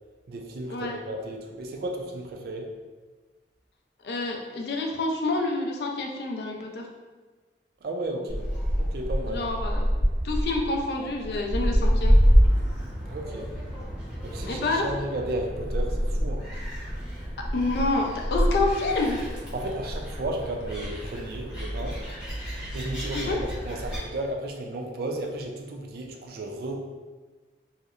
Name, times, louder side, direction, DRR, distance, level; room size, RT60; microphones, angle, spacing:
voice 1, 0.3-2.7 7.8-8.5 8.8-9.4 13.1-13.5 14.2-16.5 18.6-18.7 19.5-22.0 22.7-26.8, right 1 dB, 55° right, 2 dB, 0.3 m, -34 dB
voice 2, 4.0-6.9 9.3-9.9 10.2-12.1 14.4-14.9 17.4-19.2 23.1-23.4, left 2 dB, 60° left, 1 dB, 0.4 m, -28 dB
Gull seagull, 8.3-24.0, equal, 5° right, 0.7 m, -27 dB
2.8 x 2.0 x 2.4 m, 1.3 s
head